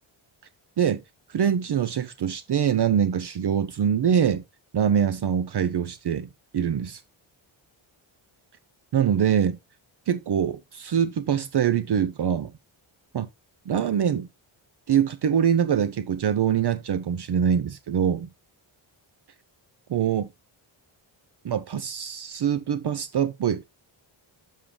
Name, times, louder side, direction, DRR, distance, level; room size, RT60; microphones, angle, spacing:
voice 1, 1.3-4.4 4.7-7.0 8.9-9.6 10.1-12.5 13.1-13.3 13.7-14.3 14.9-18.3 19.9-20.3 21.4-23.6, right 8 dB, 55° right, 0.7 m, -24 dB
7.4 x 7.3 x 3.2 m
wide cardioid pair, 130°, 49 cm